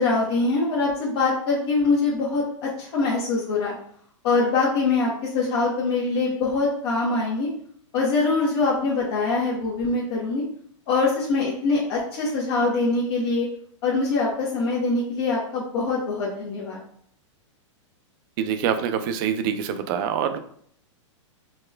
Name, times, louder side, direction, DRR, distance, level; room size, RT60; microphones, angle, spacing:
voice 1, 0.0-3.7 4.2-7.5 7.9-10.4 10.9-13.5 13.8-16.8, left 3 dB, 55° left, -5 dB, 0.9 m, -23 dB
voice 2, 18.4-20.4, right 8 dB, 40° right, 9 dB, 0.4 m, -25 dB
4.9 x 2.3 x 2.2 m, 0.62 s
hypercardioid pair, 130°, 16 cm